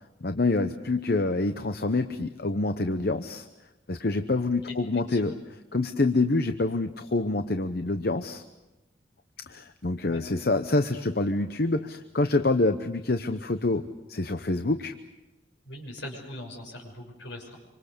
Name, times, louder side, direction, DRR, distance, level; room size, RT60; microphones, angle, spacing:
voice 1, 0.2-3.5 3.9-5.3 5.7-8.4 9.5-14.9, left 2 dB, 50° left, 8 dB, 0.8 m, -26 dB
voice 2, 15.6-17.5, left 1 dB, 70° left, 1 dB, 6.4 m, -41 dB
27.0 x 25.0 x 6.8 m, 1.0 s
head